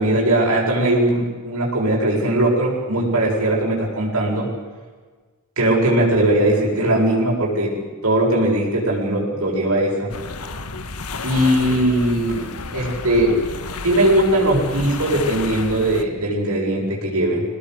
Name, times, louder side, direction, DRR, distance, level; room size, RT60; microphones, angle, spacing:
voice 1, 0.0-4.5 5.6-10.1 11.2-13.4 13.8-17.4, right 1 dB, 75° right, -4 dB, 7.6 m, -19 dB
sound 1, 10.1-16.0, left 3 dB, 85° left, 1.6 m, -31 dB
24.0 x 19.5 x 8.2 m, 1.4 s
head